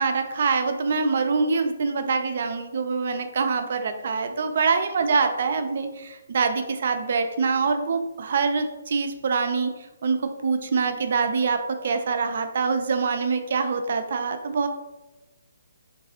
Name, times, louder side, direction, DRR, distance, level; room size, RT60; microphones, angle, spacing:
voice 1, 0.0-9.7 10.0-14.7, right 4 dB, 55° right, 7 dB, 0.4 m, -25 dB
3.8 x 2.6 x 2.7 m, 1.1 s
figure-of-eight pair, 140°, 0 cm